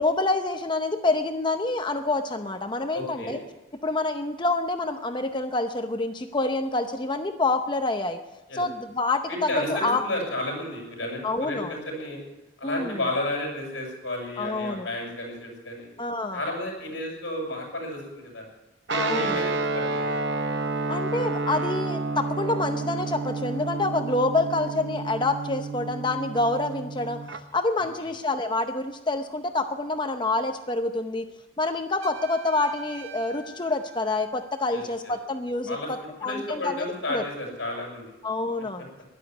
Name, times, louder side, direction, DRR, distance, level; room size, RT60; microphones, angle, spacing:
voice 1, 0.0-3.4 3.8-8.2 8.5-10.0 11.2-11.7 12.6-13.0 14.4-14.9 16.0-16.4 18.9-19.5 20.9-27.2 27.5-31.3 31.6-37.2 38.2-38.9, left 2 dB, 25° left, 6 dB, 0.7 m, -27 dB
voice 2, 2.9-3.3 8.5-8.6 9.3-12.2 12.6-15.9 16.3-18.4 18.9-20.1 34.7-35.1 35.7-35.9 36.2-38.1, left 1 dB, 60° left, 0 dB, 7.7 m, -32 dB
Guitar, 18.9-27.4, right 3 dB, 60° right, 0.9 m, -30 dB
Trumpet, 32.0-34.9, right 5 dB, 80° right, 1.6 m, -45 dB
13.0 x 11.5 x 9.6 m, 1.1 s
head